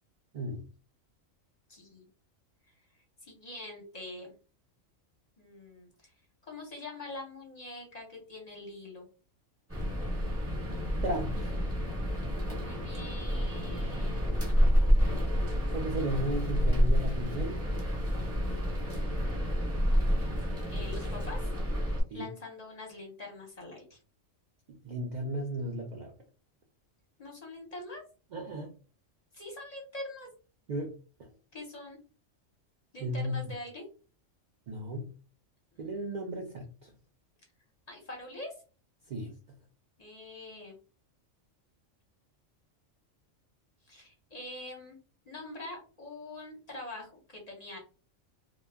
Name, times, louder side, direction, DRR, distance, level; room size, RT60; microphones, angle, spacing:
voice 1, 1.7-2.1 2.7-2.9 3.2-4.3 5.4-6.1 6.5-9.1 12.6-14.4 20.7-21.5 22.1-24.0 27.2-28.0 29.3-30.3 31.5-32.0 32.9-33.9 35.7-35.9 37.9-38.6 40.0-40.8 43.8-45.0 45.2-47.8, left 2 dB, 40° left, 0 dB, 0.6 m, -44 dB
sound 1, 9.7-22.0, equal, 10° right, 0.9 m, -29 dB
voice 2, 11.0-11.5 15.7-17.6 22.1-22.3 24.7-26.1 28.3-28.7 30.7-31.0 33.0-33.5 34.7-35.1 35.8-36.9 39.1-39.3, right 1 dB, 85° right, 2 dB, 0.4 m, -35 dB
2.2 x 2.1 x 3.3 m, 0.37 s
omnidirectional pair, 1.3 m